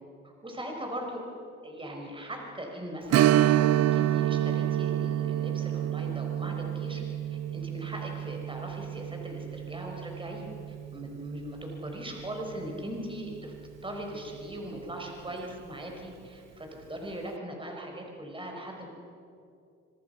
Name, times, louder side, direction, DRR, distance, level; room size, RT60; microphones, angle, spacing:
voice 1, 0.4-1.2 1.6-7.0 7.3-10.5 10.9-13.5 13.8-18.8, right 1 dB, 15° right, 1 dB, 5.2 m, -39 dB
Strum, 3.1-12.3 12.6-12.7 15.3-15.4 15.9-16.0, right 12 dB, 60° right, 0.6 m, -28 dB
26.0 x 24.5 x 5.8 m, 2.5 s
cardioid pair, 90°, 30 cm